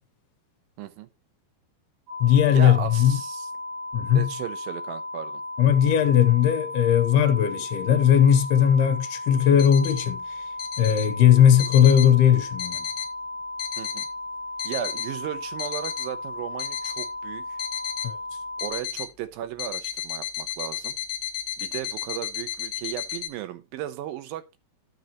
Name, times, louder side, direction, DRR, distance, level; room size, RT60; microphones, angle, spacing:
voice 1, 0.8-1.1 2.5-3.5 4.1-5.4 13.8-14.1 14.6-17.6 18.6-20.9 21.6-24.6, right 11 dB, 75° right, 2.5 m, -35 dB
sound 1, 2.1-18.7, left 2 dB, 40° right, 2.6 m, -35 dB
voice 2, 2.2-3.2 3.9-4.3 5.6-10.4 10.8-12.9 18.0-18.2, left 9 dB, 85° left, 2.9 m, -18 dB
sound 2, 9.6-10.1 10.6-11.1 11.6-12.1 12.6-13.1 13.6-14.1 14.6-15.1 15.6-16.1 16.6-17.1 17.6-18.1 18.6-19.1 19.6-23.3, left 10 dB, 70° left, 2.0 m, -33 dB
13.0 x 6.6 x 2.9 m
omnidirectional pair, 4.5 m